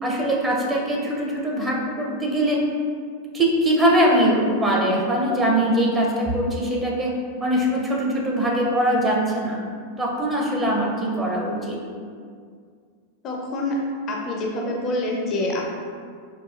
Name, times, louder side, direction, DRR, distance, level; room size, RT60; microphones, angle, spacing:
voice 1, 0.0-2.6 3.3-7.1 7.4-9.6 10.0-11.8, right 1 dB, 15° right, -3 dB, 0.6 m, -22 dB
voice 2, 13.2-13.8 14.1-15.6, left 1 dB, 35° left, -1 dB, 0.4 m, -26 dB
4.0 x 2.4 x 2.4 m, 2.1 s
figure-of-eight pair, 90°, 0 cm